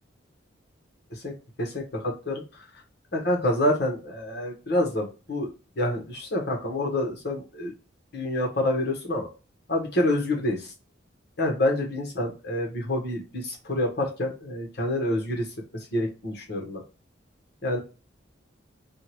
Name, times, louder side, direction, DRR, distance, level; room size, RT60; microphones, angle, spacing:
voice 1, 1.1-2.4 3.1-5.5 5.8-7.7 8.1-9.3 9.7-10.7 11.4-15.5 15.7-16.8 17.6-17.8, left 1 dB, 55° left, 0 dB, 1.3 m, -27 dB
3.7 x 2.5 x 2.9 m, 0.33 s
head